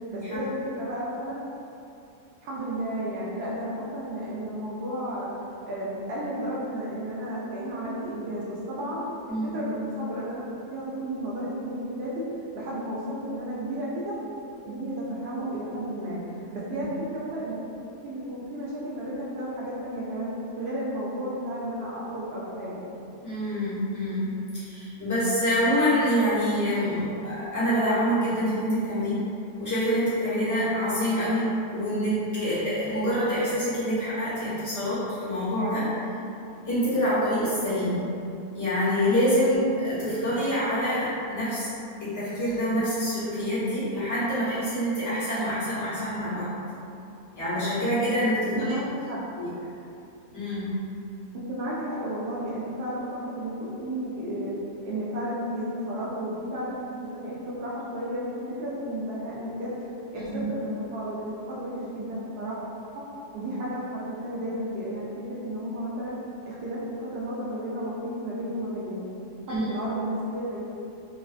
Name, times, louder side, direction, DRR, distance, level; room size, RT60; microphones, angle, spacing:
voice 1, 0.1-1.4 2.4-5.3 5.7-9.0 9.5-10.4 10.7-12.2 12.5-14.1 14.6-16.2 16.5-17.6 18.0-20.3 20.6-22.8 48.4-49.2 51.3-54.5 54.8-56.8 57.1-58.3 58.6-62.5 62.9-63.0 63.3-66.2 66.5-69.1 69.5-70.6, right 1 dB, 90° right, -7 dB, 0.5 m, -33 dB
voice 2, 23.2-29.2 29.6-35.9 36.6-38.0 38.5-41.7 42.0-46.5 47.3-48.7 49.4-49.5 50.3-50.7 60.1-60.4 69.5-69.7, equal, 15° left, -13 dB, 0.8 m, -26 dB
3.0 x 2.5 x 2.4 m, 2.7 s
omnidirectional pair, 1.7 m